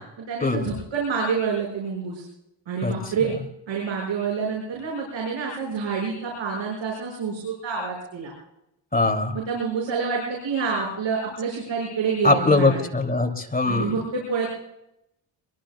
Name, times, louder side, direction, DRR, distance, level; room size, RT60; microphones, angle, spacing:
voice 1, 0.2-2.2 2.7-3.3 3.7-8.3 9.3-12.8 13.6-14.5, right 5 dB, 80° right, -2 dB, 6.3 m, -27 dB
voice 2, 8.9-9.4 12.2-13.9, left 3 dB, 20° left, 5 dB, 2.8 m, -21 dB
26.0 x 23.0 x 2.4 m, 0.83 s
cardioid pair, 90°, 44 cm